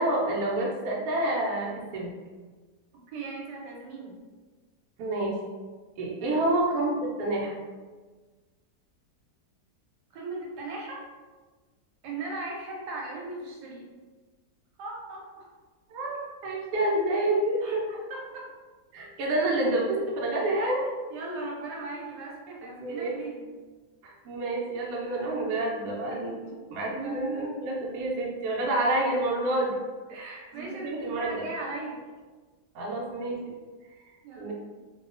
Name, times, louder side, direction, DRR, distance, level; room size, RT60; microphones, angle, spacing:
voice 1, 0.0-2.1 5.0-5.4 6.0-7.5 15.9-18.0 18.9-20.9 22.7-23.1 24.0-26.3 26.7-29.8 30.5-31.4 32.7-33.5 34.4-34.5, right 1 dB, 70° right, -3 dB, 1.0 m, -28 dB
voice 2, 3.1-4.2 6.2-6.4 10.1-11.0 12.0-13.9 14.8-15.5 17.6-18.5 21.1-23.4 26.3-26.5 26.9-27.2 30.1-32.0 34.2-34.5, right 2 dB, 85° right, -2 dB, 1.2 m, -38 dB
2.7 x 2.2 x 2.5 m, 1.3 s
omnidirectional pair, 1.8 m